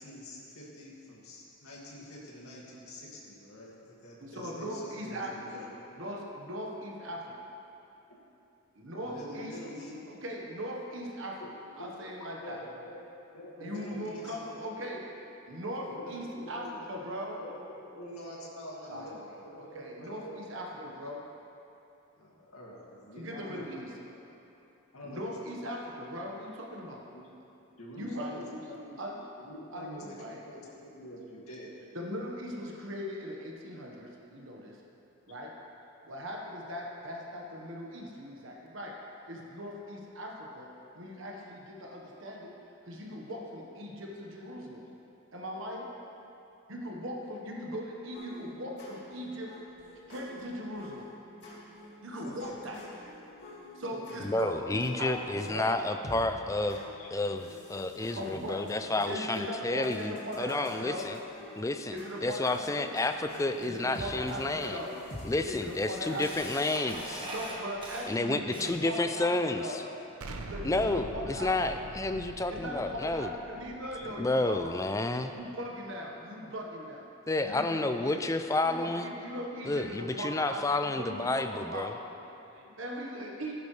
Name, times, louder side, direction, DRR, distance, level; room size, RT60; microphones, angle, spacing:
voice 1, 0.0-5.8 9.0-10.2 11.4-11.7 12.0-12.1 12.4-13.0 13.3-14.7 15.9-16.7 17.3-20.5 22.2-23.8 24.9-25.3 27.1-27.2 27.8-28.8 29.4-30.0 30.4-31.8 32.1-32.2 52.2-52.6 54.1-54.3 57.0-57.1 72.5-72.6 73.9-74.1, equal, 85° left, -5 dB, 2.3 m, -46 dB
voice 2, 4.2-5.7 5.9-7.3 8.7-11.4 11.8-12.6 13.6-15.0 15.5-17.4 18.8-21.2 23.1-24.3 25.0-27.0 27.7-29.3 29.7-30.4 31.9-34.8 35.3-35.5 36.0-39.0 39.3-40.7 40.9-42.6 42.8-44.9 45.3-45.9 46.7-49.5 50.1-51.1 52.0-53.1 53.7-55.8 56.7-57.2 57.7-61.1 61.4-61.5 61.9-62.9 63.6-66.6 67.2-70.2 70.5-71.8 72.5-74.7 75.3-77.1 77.4-78.3 78.6-83.5, equal, 60° right, -1 dB, 1.3 m, -40 dB
sound 1, 48.1-66.6, left 1 dB, 50° left, 2.3 m, -48 dB
voice 3, 54.2-56.8 57.1-61.2 61.6-64.8 65.2-67.3 68.1-69.8 70.6-73.3 74.2-75.4 77.3-79.1 79.6-81.9, left 2 dB, 15° left, 8 dB, 0.4 m, -30 dB
Camera, 64.0-64.1 65.0-65.1 65.5-69.0, right 1 dB, 20° right, 1.6 m, -41 dB
Explosion, 70.2-75.0, right 1 dB, 85° right, 0.8 m, -44 dB
15.0 x 10.5 x 3.3 m, 2.9 s
head